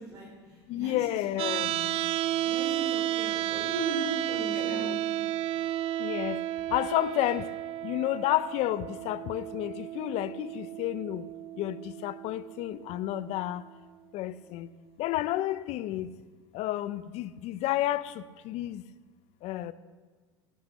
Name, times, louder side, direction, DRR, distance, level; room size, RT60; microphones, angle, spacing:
voice 1, 0.0-1.9 2.4-5.0, right 1 dB, 25° right, 4.8 m, -38 dB
voice 2, 0.7-1.7 4.5-5.0 6.0-6.4 6.7-7.5 7.8-11.3 11.6-13.6 14.1-14.7 15.0-16.1 16.5-18.8 19.4-19.7, left 14 dB, 55° left, 0.7 m, -31 dB
sound 1, 1.4-13.4, right 13 dB, 45° right, 0.5 m, -33 dB
14.5 x 9.4 x 6.5 m
supercardioid pair, 100°, 13 cm